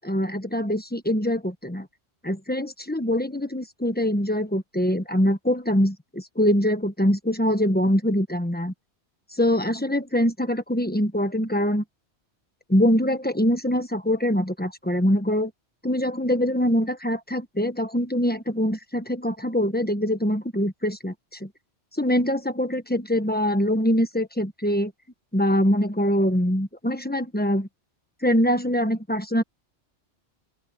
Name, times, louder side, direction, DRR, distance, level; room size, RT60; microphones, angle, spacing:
voice 1, 0.0-1.9 2.2-8.7 9.3-11.8 12.7-15.5 15.8-21.5 22.0-24.9 25.3-27.7 28.2-29.4, equal, 10° left, 1.2 m, -23 dB
open air
omnidirectional pair, 1.1 m